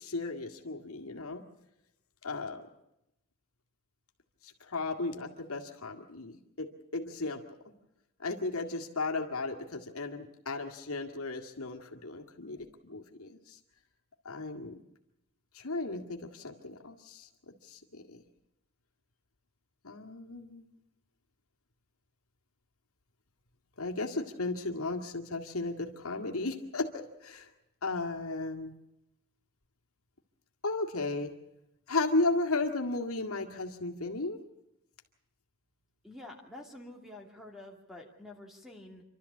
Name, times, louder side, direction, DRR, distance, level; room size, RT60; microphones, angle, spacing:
voice 1, 0.0-1.4 2.2-2.7 4.4-7.4 8.2-13.6 14.2-14.8 15.5-18.2 19.8-20.6 23.8-27.5 27.8-28.7 30.6-31.3 31.9-34.4, left 3 dB, 70° left, 3 dB, 2.1 m, -35 dB
voice 2, 36.0-39.0, left 1 dB, ahead, 2 dB, 2.6 m, -48 dB
28.0 x 12.5 x 8.5 m, 0.87 s
head